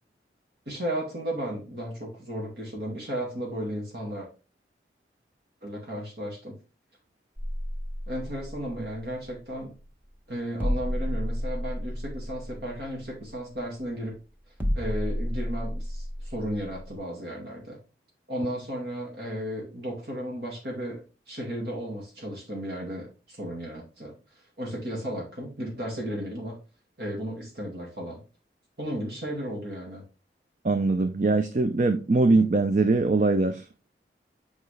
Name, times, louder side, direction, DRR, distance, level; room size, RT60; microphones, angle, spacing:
voice 1, 0.7-4.3 5.6-6.6 8.1-9.7 10.3-14.1 14.7-17.8 18.3-21.0 21.3-24.1 24.6-26.6 27.0-28.2 28.8-30.0, equal, 60° right, 2.1 m, -34 dB
sound 1, 7.4-17.0, equal, 10° right, 1.1 m, -32 dB
voice 2, 30.6-33.6, right 3 dB, 40° right, 0.5 m, -22 dB
7.7 x 5.0 x 3.3 m
head